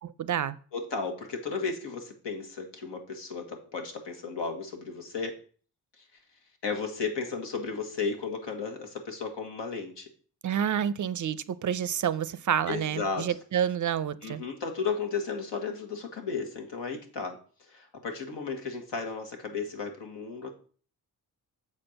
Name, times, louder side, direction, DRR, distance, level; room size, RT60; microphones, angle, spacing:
voice 1, 0.0-0.6 10.4-14.4, right 9 dB, 45° right, 0.4 m, -29 dB
voice 2, 0.7-5.4 6.0-6.1 6.6-10.1 12.7-13.4 14.2-20.5, left 5 dB, 80° left, 1.8 m, -34 dB
7.3 x 4.4 x 6.5 m
wide cardioid pair, 125°, 42 cm